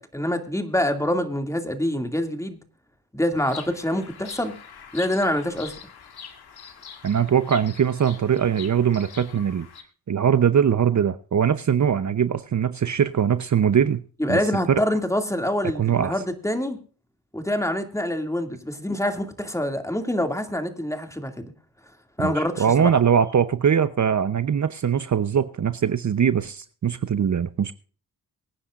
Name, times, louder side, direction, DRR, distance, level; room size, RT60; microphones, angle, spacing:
voice 1, 0.0-2.6 3.1-4.5 4.9-5.7 14.2-16.8 17.3-21.5 22.2-23.0, left 1 dB, 10° left, 2.3 m, -26 dB
Bird vocalization bird call bird song, 3.4-9.8, left 7 dB, 75° left, 2.0 m, -43 dB
voice 2, 7.0-9.7 10.1-14.0 14.3-14.4 14.7-14.8 15.7-16.1 22.2-27.7, right 8 dB, 50° right, 0.8 m, -21 dB
24.0 x 9.8 x 2.5 m
cardioid pair, 80°, 38 cm